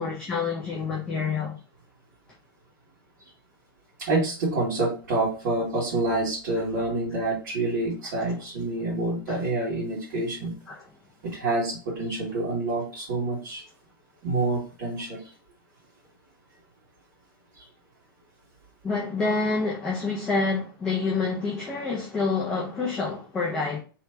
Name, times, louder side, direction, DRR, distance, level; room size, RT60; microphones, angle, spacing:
voice 1, 0.0-1.6 8.0-8.1 9.3-9.4 10.7-10.8 18.8-23.8, left 4 dB, 5° left, 0.5 m, -27 dB
voice 2, 4.0-10.5 11.2-13.6 14.2-15.2, right 2 dB, 40° right, 2.0 m, -27 dB
3.3 x 3.0 x 4.4 m
hypercardioid pair, 175°, 12 cm